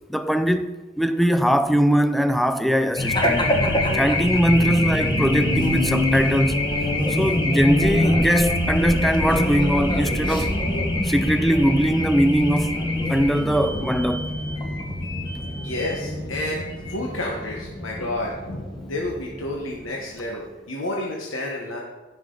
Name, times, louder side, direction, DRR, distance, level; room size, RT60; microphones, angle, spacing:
voice 1, 0.1-3.4 3.9-6.6 7.2-10.5 11.0-12.8 13.1-14.3, equal, ahead, 0.4 m, -21 dB
Race car auto racing / Alarm, 3.0-19.9, left 1 dB, 20° left, 1.4 m, -24 dB
voice 2, 7.1-7.5 15.6-16.6 16.9-21.8, left 1 dB, 85° left, 1.3 m, -30 dB
16.0 x 5.9 x 3.9 m
head